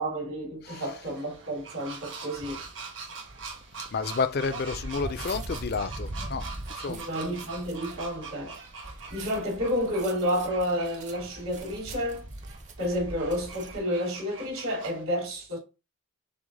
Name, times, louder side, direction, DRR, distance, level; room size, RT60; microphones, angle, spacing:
voice 1, 0.0-2.6 6.9-8.6 9.1-12.2 12.8-15.6, equal, 90° right, 2.7 m, -30 dB
voice 2, 0.6-1.0 3.9-6.5 6.8-7.1, left 5 dB, 45° left, 0.4 m, -30 dB
sound 1, 0.7-15.0, right 4 dB, 60° right, 1.2 m, -44 dB
sound 2, 2.3-2.7 3.3-13.8, right 1 dB, 35° right, 0.5 m, -42 dB
6.0 x 2.1 x 3.8 m
head